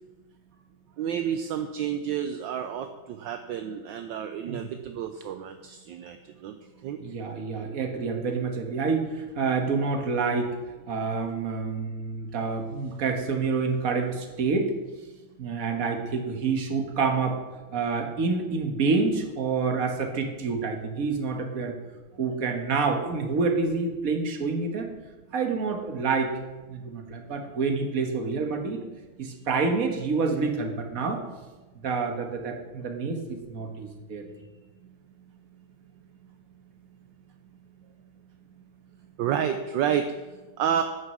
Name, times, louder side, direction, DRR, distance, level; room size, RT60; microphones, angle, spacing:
voice 1, 1.0-6.2 6.4-6.5 6.8-7.0 39.2-40.1 40.6-40.8, right 9 dB, 70° right, 7 dB, 1.3 m, -29 dB
voice 2, 7.0-10.6 10.9-14.7 15.4-17.4 17.7-21.7 22.2-24.9 25.3-26.3 26.7-28.8 29.2-31.2 31.7-34.2, right 4 dB, 45° right, 3 dB, 1.6 m, -28 dB
9.6 x 9.5 x 6.1 m, 1.2 s
omnidirectional pair, 2.3 m